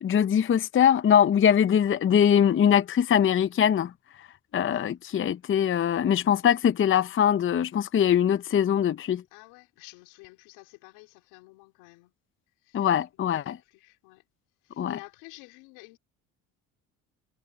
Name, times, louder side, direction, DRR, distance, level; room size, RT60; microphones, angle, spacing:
voice 1, 0.0-3.9 4.5-9.2 12.7-13.5 14.8-15.0, left 9 dB, 35° left, 0.7 m, -22 dB
voice 2, 9.3-12.1 12.6-12.9 13.1-14.2 14.6-16.0, left 25 dB, 85° left, 4.3 m, -50 dB
supercardioid pair, 75°, 37 cm